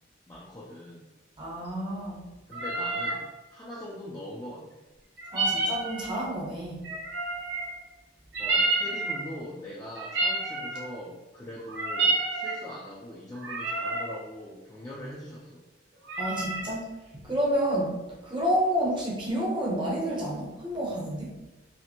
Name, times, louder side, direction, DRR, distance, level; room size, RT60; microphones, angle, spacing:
voice 1, 0.3-1.1 2.5-4.8 8.4-15.6, left 1 dB, 20° left, -6 dB, 0.4 m, -42 dB
voice 2, 1.4-2.2 5.3-6.9 16.2-16.9 17.2-18.0 18.2-21.3, equal, 25° right, -4 dB, 0.7 m, -29 dB
Cat Mew Compilation, 2.5-3.2 5.2-6.3 6.8-7.8 8.3-9.3 10.0-10.9 11.6-12.6 13.3-14.1 16.0-16.7, right 2 dB, 70° right, 0.7 m, -29 dB
4.1 x 2.0 x 2.8 m, 1.1 s
head